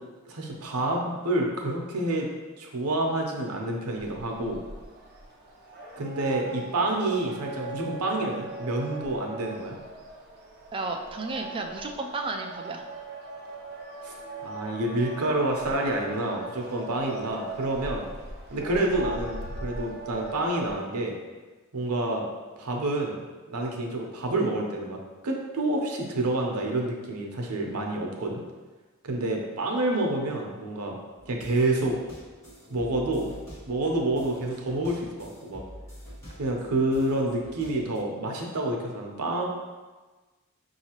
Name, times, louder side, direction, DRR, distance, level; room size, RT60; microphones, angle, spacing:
voice 1, 0.3-2.3 2.6-4.6 6.0-9.8 14.0-14.2 14.4-18.0 18.5-21.1 21.7-22.3 22.6-23.2 23.5-25.0 25.2-28.4 29.0-31.0 31.3-32.0 32.7-33.4 33.7-35.6 36.4-39.4, right 2 dB, 80° right, 1 dB, 0.7 m, -28 dB
sound 1, 4.0-20.7, right 2 dB, 45° right, 0.7 m, -40 dB
voice 2, 10.7-12.8, right 3 dB, 25° right, 3 dB, 0.3 m, -33 dB
sound 2, 31.2-38.0, equal, 15° left, 1.4 m, -46 dB
5.5 x 2.8 x 2.9 m, 1.3 s
head